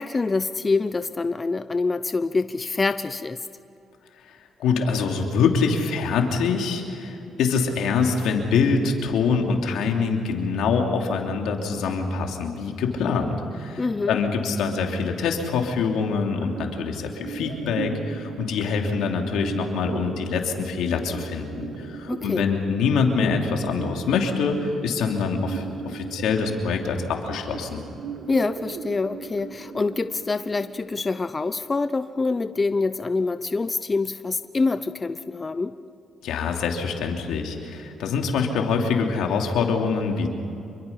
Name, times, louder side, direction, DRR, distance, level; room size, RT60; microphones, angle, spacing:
voice 1, 0.0-3.4 13.8-14.2 22.1-22.4 28.3-35.8, left 3 dB, 25° left, 12 dB, 0.6 m, -25 dB
voice 2, 4.3-27.8 36.2-40.3, left 5 dB, 85° left, 2 dB, 3.0 m, -25 dB
sound 1, 16.4-32.4, right 6 dB, 75° right, 1.7 m, -38 dB
27.0 x 23.0 x 5.8 m, 2.9 s
cardioid pair, 90°, 0 cm